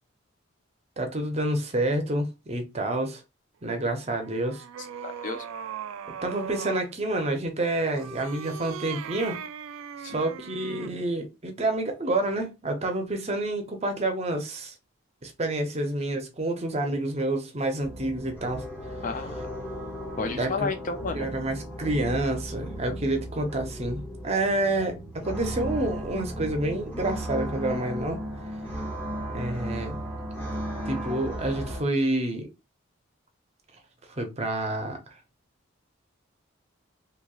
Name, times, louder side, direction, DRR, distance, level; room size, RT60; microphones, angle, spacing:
voice 1, 1.0-3.2 3.6-4.6 6.2-9.4 10.0-14.7 15.2-18.6 20.3-20.5 21.1-28.2 29.3-30.0 30.8-32.5 34.2-35.1, right 2 dB, 30° right, 0.6 m, -28 dB
sound 1, 3.9-6.9 7.9-11.0, right 8 dB, 80° right, 0.3 m, -39 dB
voice 2, 4.8-5.5 10.0-10.2 19.0-19.5 20.2-21.3 28.6-28.9, left 4 dB, 40° left, 0.3 m, -33 dB
sound 2, 17.8-31.8, equal, 10° left, 0.8 m, -35 dB
3.0 x 2.9 x 2.3 m
head